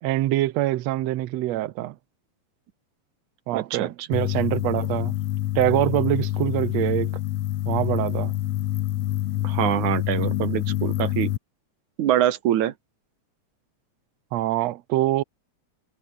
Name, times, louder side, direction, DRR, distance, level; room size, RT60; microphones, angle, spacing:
voice 1, 0.0-2.0 3.5-5.1 5.6-7.1 7.7-8.3 14.3-15.2, right 15 dB, 70° right, 1.9 m, -24 dB
voice 2, 3.5-3.9 9.4-11.3 12.0-12.7, right 12 dB, 90° right, 2.8 m, -24 dB
sound 1, 4.1-11.4, left 14 dB, 70° left, 1.8 m, -26 dB
omnidirectional pair, 3.3 m